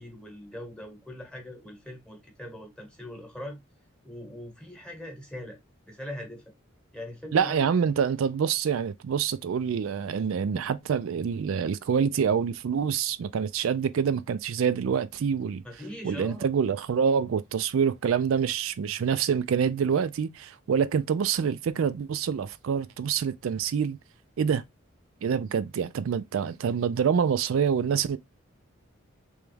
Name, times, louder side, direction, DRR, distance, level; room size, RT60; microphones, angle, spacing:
voice 1, 0.0-3.6 4.0-5.6 5.8-6.4 6.9-7.6 15.6-16.5, left 1 dB, 5° left, 1.0 m, -41 dB
voice 2, 7.3-15.6 16.0-24.0 24.4-24.6 25.2-28.2, right 7 dB, 75° right, 0.4 m, -26 dB
3.4 x 3.1 x 3.3 m
head